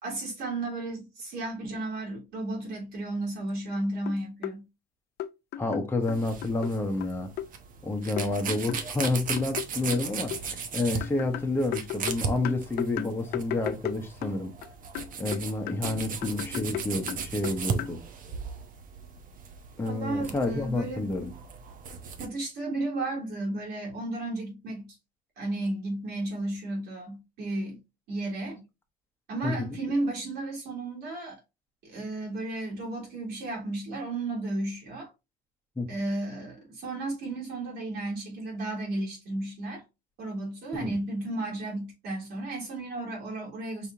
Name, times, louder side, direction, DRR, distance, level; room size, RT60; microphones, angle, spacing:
voice 1, 0.0-4.6 19.8-21.1 22.2-24.9 25.4-27.8 28.1-28.6 29.3-31.4 31.8-35.1 35.9-39.8 40.2-43.9, right 2 dB, 75° right, 3.0 m, -33 dB
sound 1, 3.8-4.6 5.2-6.7 7.0-7.5 8.2-10.4 11.0-14.7 15.0-18.0, left 11 dB, 75° left, 0.4 m, -36 dB
voice 2, 5.6-7.3 7.8-10.3 10.7-14.5 15.2-18.0 19.8-21.3 29.4-29.8 35.8-35.9 40.8-41.0, left 2 dB, 15° left, 1.0 m, -29 dB
sound 2, 6.0-22.3, right 6 dB, 55° right, 0.9 m, -37 dB
4.9 x 3.4 x 2.7 m
cardioid pair, 110°, 17 cm